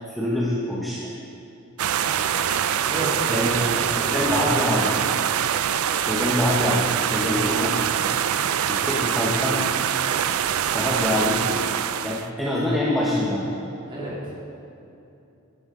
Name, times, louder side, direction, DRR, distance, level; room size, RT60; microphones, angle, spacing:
voice 1, 0.2-1.0 3.3-3.7 4.0-4.9 6.0-7.7 8.7-9.6 10.7-11.7 12.0-13.4, left 1 dB, ahead, -6 dB, 0.9 m, -25 dB
sound 1, 1.8-12.3, right 9 dB, 85° right, 0.4 m, -24 dB
voice 2, 2.9-4.8 13.9-14.2, right 1 dB, 25° right, -7 dB, 2.8 m, -31 dB
11.0 x 11.0 x 3.7 m, 2.8 s
head